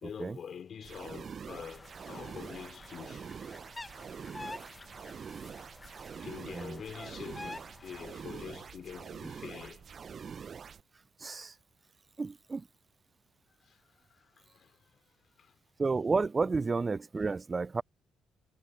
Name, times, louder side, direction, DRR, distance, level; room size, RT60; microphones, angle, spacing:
voice 1, 0.0-3.3 6.2-9.8 13.6-15.6, left 7 dB, 55° left, 3.2 m, -46 dB
sound 1, 0.8-10.8, right 6 dB, 50° right, 0.9 m, -45 dB
sound 2, 1.7-8.3, left 2 dB, 20° left, 1.3 m, -49 dB
voice 2, 11.2-11.5 12.2-12.6 15.8-17.8, right 4 dB, 30° right, 0.4 m, -31 dB
hypercardioid pair, 50°, 0 cm